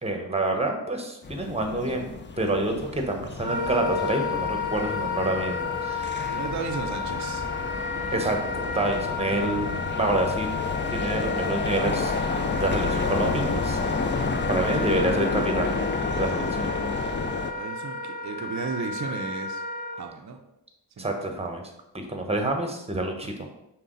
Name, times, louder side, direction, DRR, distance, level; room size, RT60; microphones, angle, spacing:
voice 1, 0.0-6.1 8.1-10.5 10.9-12.1 12.5-13.8 14.5-15.7 16.2-16.7 21.0-21.6 21.9-23.3, right 2 dB, 15° right, 3 dB, 0.9 m, -27 dB
sound 1, 1.2-17.5, left 4 dB, 25° left, 0.4 m, -30 dB
Wind instrument woodwind instrument, 3.4-20.0, left 4 dB, 60° left, 1.5 m, -32 dB
voice 2, 6.2-7.5 14.8-15.0 15.3-15.4 17.6-19.6 20.0-20.4 21.0-21.4, right 4 dB, 40° right, 3 dB, 0.5 m, -35 dB
5.6 x 2.2 x 3.8 m, 0.88 s
cardioid pair, 45°, 46 cm